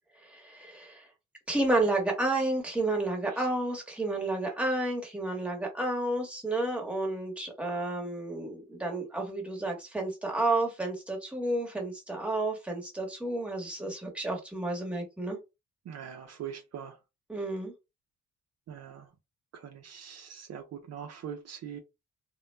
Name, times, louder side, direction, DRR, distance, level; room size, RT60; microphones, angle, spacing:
voice 1, 0.2-1.1 1.5-15.4 17.3-17.7, right 2 dB, 5° right, 1.1 m, -31 dB
voice 2, 15.9-17.0 18.7-19.1 19.5-21.8, right 8 dB, 55° right, 0.6 m, -42 dB
2.2 x 2.1 x 3.1 m
cardioid pair, 90°, 30 cm